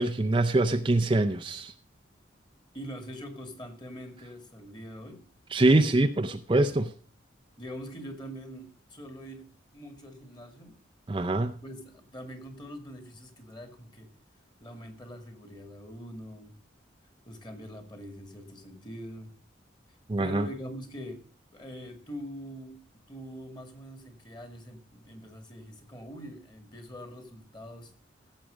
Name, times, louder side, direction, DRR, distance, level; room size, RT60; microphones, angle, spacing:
voice 1, 0.0-1.7 5.5-6.9 11.1-11.5 20.1-20.5, right 2 dB, 25° right, 0.5 m, -24 dB
voice 2, 2.7-5.2 7.6-10.8 11.6-14.1 14.6-16.6 17.3-19.3 20.2-21.2 21.5-22.8 23.1-27.9, equal, 25° left, 2.1 m, -43 dB
16.0 x 7.5 x 5.1 m
head